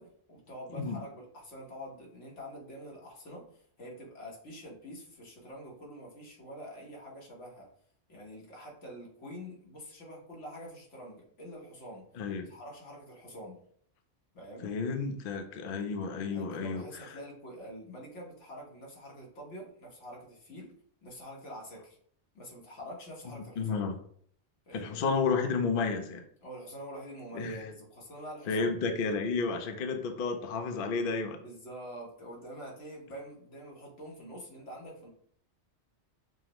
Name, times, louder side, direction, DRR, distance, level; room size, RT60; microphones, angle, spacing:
voice 1, 0.0-7.7 8.1-12.1 12.4-13.6 14.3-14.8 16.3-20.7 21.0-22.0 22.3-23.8 24.7-25.1 26.4-28.8 31.4-35.1, equal, 85° left, -2 dB, 1.5 m, -46 dB
voice 2, 12.2-12.5 14.6-17.1 23.6-24.0 24.7-26.2 27.3-27.7 28.5-31.4, left 4 dB, 60° left, 5 dB, 0.6 m, -31 dB
5.7 x 2.1 x 2.9 m, 0.62 s
omnidirectional pair, 1.2 m